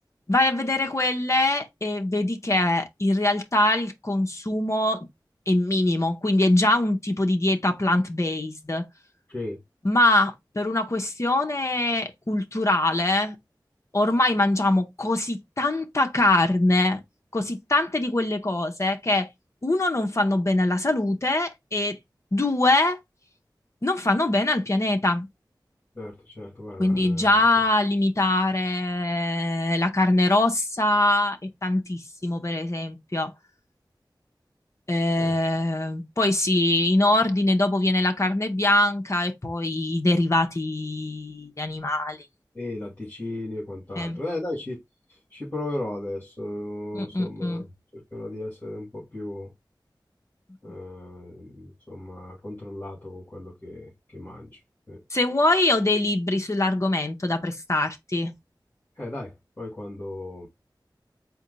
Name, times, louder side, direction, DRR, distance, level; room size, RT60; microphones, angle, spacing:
voice 1, 0.3-5.1 5.5-8.9 9.8-13.4 13.9-17.0 17.3-19.3 19.6-22.0 22.3-23.0 23.8-25.3 26.8-33.3 34.9-42.2 44.0-44.2 46.9-47.6 55.1-58.3, left 2 dB, 40° left, 0.8 m, -23 dB
voice 2, 25.9-27.4 35.2-35.3 42.5-44.8 45.3-47.7 47.9-49.5 50.6-54.6 54.9-55.0 59.0-60.5, left 1 dB, 20° left, 2.2 m, -35 dB
4.3 x 2.2 x 3.9 m
wide cardioid pair, 65°, 8 cm